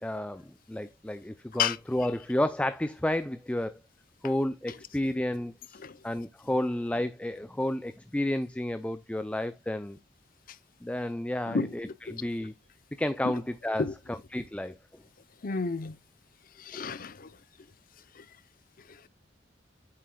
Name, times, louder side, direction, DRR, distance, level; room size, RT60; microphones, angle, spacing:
voice 1, 0.0-3.8 4.2-10.0 10.8-12.5 13.0-14.7 16.7-16.9, left 1 dB, 5° left, 0.4 m, -31 dB
voice 2, 15.4-15.9 16.6-17.3 18.2-18.3, left 5 dB, 50° left, 0.7 m, -30 dB
8.5 x 7.5 x 2.2 m
head